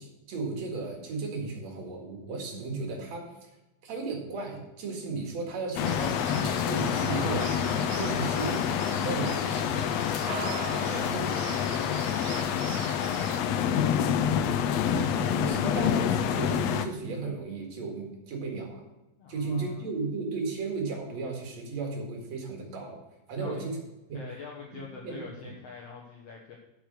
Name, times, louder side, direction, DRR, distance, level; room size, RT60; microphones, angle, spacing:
voice 1, 0.0-3.5 3.8-7.6 7.9-10.1 10.9-11.3 13.6-14.3 14.8-18.8 19.3-23.0 23.3-23.8 24.1-24.2 25.0-25.2, right 3 dB, 55° right, 1 dB, 3.1 m, -35 dB
sound 1, 5.8-16.9, left 8 dB, 85° left, 1.4 m, -27 dB
sound 2, 5.9-13.4, right 13 dB, 85° right, 2.1 m, -42 dB
voice 2, 10.8-12.2 19.2-19.9 23.4-23.6 24.1-26.6, left 5 dB, 60° left, -2 dB, 2.0 m, -44 dB
8.2 x 6.6 x 6.4 m, 0.98 s
omnidirectional pair, 3.8 m